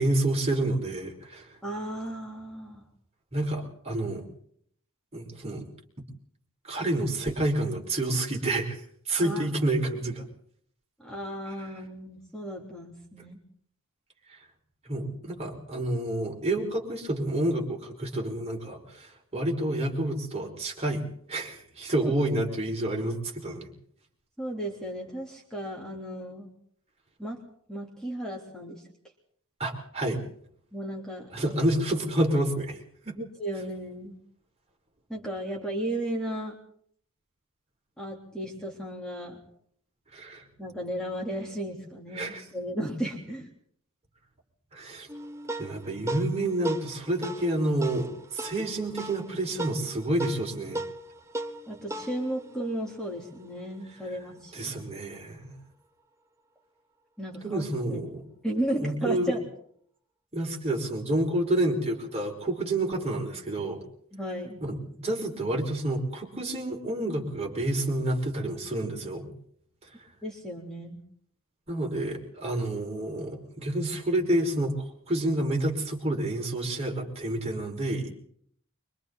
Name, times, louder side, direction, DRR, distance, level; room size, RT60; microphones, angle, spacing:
voice 1, 0.0-1.5 3.3-4.2 5.1-5.6 6.7-8.8 9.1-10.2 11.6-11.7 14.9-23.7 29.6-30.2 31.3-32.8 33.0-33.2 40.1-40.4 42.1-42.4 44.7-45.1 45.6-50.8 54.5-55.6 57.4-58.2 58.8-59.4 60.3-63.8 64.6-69.3 71.7-78.1, right 1 dB, 30° right, 0 dB, 5.3 m, -29 dB
voice 2, 1.6-2.8 9.2-9.5 11.0-13.4 22.0-22.1 24.4-26.5 27.2-27.4 27.7-28.8 30.7-31.5 33.2-34.2 35.1-36.6 38.0-39.4 40.6-43.5 51.7-54.8 57.2-58.0 58.4-59.4 64.1-64.6 70.2-71.0, right 1 dB, 5° left, -2 dB, 3.6 m, -34 dB
sound 1, 45.1-53.8, right 1 dB, 15° right, 1.0 m, -38 dB
25.5 x 25.0 x 4.1 m, 0.63 s
head